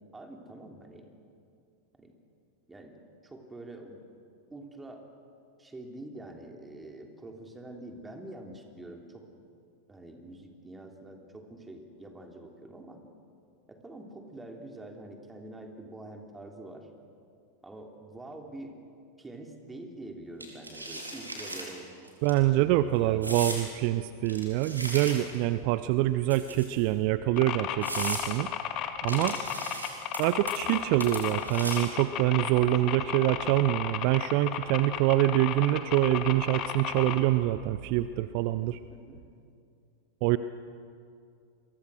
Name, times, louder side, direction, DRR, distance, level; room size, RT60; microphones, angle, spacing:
voice 1, 0.1-1.1 2.0-2.1 2.7-2.9 3.2-4.0 4.5-5.1 5.6-9.3 9.9-13.0 13.7-16.9 17.6-18.8 19.2-22.1 22.6-23.4 29.1-29.5 32.8-33.3 38.9-39.2, right 2 dB, 10° right, 3 dB, 3.2 m, -45 dB
sound 1, 20.4-21.7 22.1-22.3 23.2-23.6 24.3-25.4 26.3-26.9 27.4-27.5 27.8-28.2 29.1-30.2 30.5-30.8 31.0-31.9, right 1 dB, 80° right, 4.3 m, -37 dB
voice 2, 22.2-28.5 29.0-29.4 30.2-38.8 40.2-40.4, right 15 dB, 45° right, 14 dB, 0.6 m, -25 dB
sound 2, 27.4-37.2, left 10 dB, 35° left, 1.9 m, -34 dB
29.0 x 23.0 x 6.4 m, 2.5 s
figure-of-eight pair, 90°, 0 cm